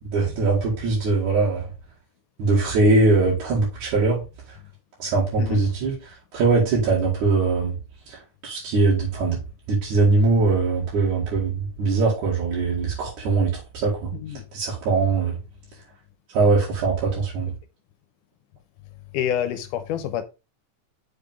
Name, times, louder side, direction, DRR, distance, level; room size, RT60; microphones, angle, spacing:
voice 1, 0.1-1.7 2.4-4.2 5.0-6.0 6.3-7.8 8.1-9.4 9.7-14.1 14.5-15.4 16.3-17.5, right 3 dB, 70° right, 3.5 m, -21 dB
voice 2, 14.1-14.4 19.1-20.2, left 10 dB, 90° left, 2.3 m, -27 dB
6.5 x 5.4 x 3.6 m
omnidirectional pair, 3.6 m